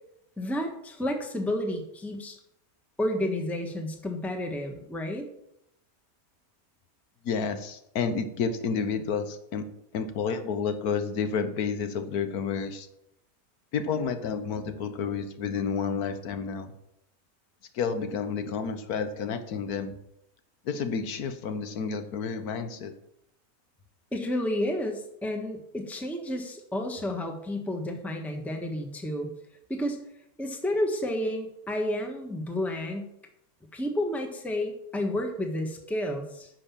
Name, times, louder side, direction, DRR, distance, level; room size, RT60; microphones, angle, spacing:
voice 1, 0.4-2.4 3.0-5.2 24.1-29.3 29.7-30.0 30.4-33.1 33.7-36.5, left 1 dB, ahead, 3 dB, 1.3 m, -31 dB
voice 2, 7.2-9.6 9.9-12.9 13.7-16.7 17.7-19.9 20.6-22.9, left 6 dB, 90° left, 9 dB, 1.5 m, -30 dB
10.0 x 6.4 x 7.2 m, 0.78 s
omnidirectional pair, 1.5 m